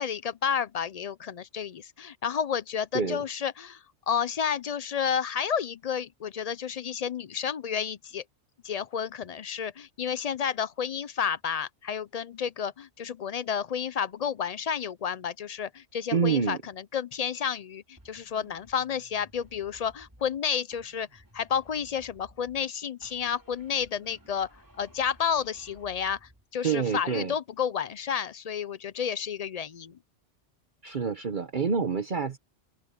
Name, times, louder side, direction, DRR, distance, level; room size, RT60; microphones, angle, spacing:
voice 1, 0.0-8.2 8.6-16.6 16.9-24.5 24.8-30.0, left 7 dB, 50° left, 0.4 m, -31 dB
voice 2, 16.1-16.6 26.6-27.3 30.8-32.4, right 6 dB, 45° right, 1.1 m, -27 dB
sound 1, 18.0-20.4 20.7-22.7 23.0-26.5, equal, 15° right, 3.3 m, -57 dB
open air
omnidirectional pair, 1.2 m